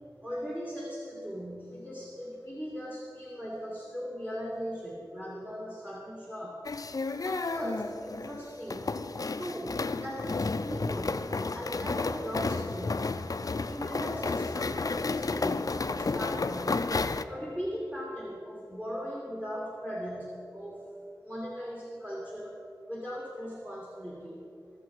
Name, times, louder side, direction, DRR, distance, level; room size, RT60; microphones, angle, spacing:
voice 1, 0.2-6.6 7.2-8.9 9.4-13.1 13.7-16.9 17.3-20.8 21.2-22.6 22.9-24.4, equal, 15° right, -3 dB, 2.1 m, -39 dB
sound 1, 6.6-17.2, left 3 dB, 55° left, 0.5 m, -32 dB
20.5 x 7.0 x 4.7 m, 2.6 s
wide cardioid pair, 55°, 7 cm